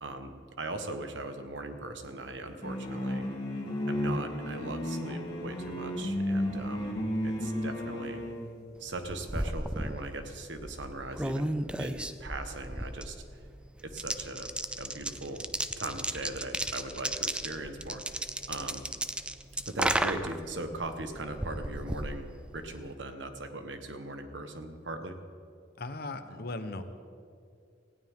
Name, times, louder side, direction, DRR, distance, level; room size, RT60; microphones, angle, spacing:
voice 1, 0.0-3.2 3.8-7.0 7.2-8.2 8.8-13.2 13.8-14.5 14.8-15.4 15.8-18.8 19.7-22.3 22.5-25.2, right 2 dB, 80° right, 7 dB, 1.3 m, -39 dB
sound 1, 2.6-8.5, left 1 dB, 30° left, 2.7 m, -33 dB
sound 2, 8.9-22.9, right 1 dB, 5° right, 0.4 m, -35 dB
voice 2, 25.8-26.8, left 2 dB, 55° left, 9 dB, 1.0 m, -37 dB
18.5 x 16.0 x 3.7 m, 2.4 s
head